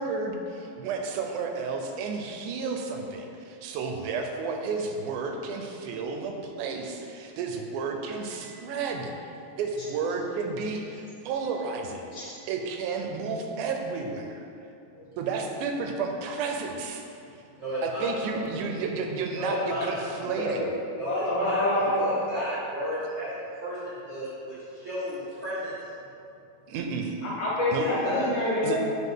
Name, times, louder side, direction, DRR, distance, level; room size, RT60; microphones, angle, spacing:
voice 1, 0.0-9.1 9.6-14.4 15.2-17.0 17.8-20.7 26.7-27.1 27.7-27.9 28.6-28.8, right 4 dB, 85° right, 3 dB, 2.1 m, -32 dB
voice 2, 8.3-8.8 9.5-9.6 12.3-12.5 17.6-18.4 19.3-20.0 20.3-20.5 21.0-25.7 27.8-28.3, equal, 30° right, -11 dB, 1.4 m, -33 dB
voice 3, 20.4-22.1 27.2-28.8, left 1 dB, 65° left, -8 dB, 2.9 m, -27 dB
8.2 x 4.5 x 3.6 m, 2.6 s
omnidirectional pair, 3.5 m